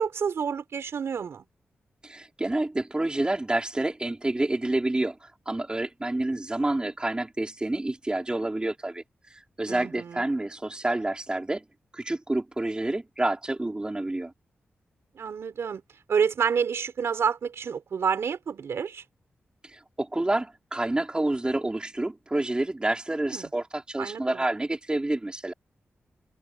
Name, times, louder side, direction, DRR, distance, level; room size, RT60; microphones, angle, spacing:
voice 1, 0.0-1.4 9.7-10.3 15.1-15.8 16.1-19.0 23.3-23.5 24.0-24.4, right 6 dB, 80° right, 4.4 m, -28 dB
voice 2, 2.0-5.2 5.5-9.0 9.6-11.6 11.9-14.3 19.7-25.5, right 2 dB, 20° right, 4.4 m, -28 dB
cardioid pair, 80°, 4 cm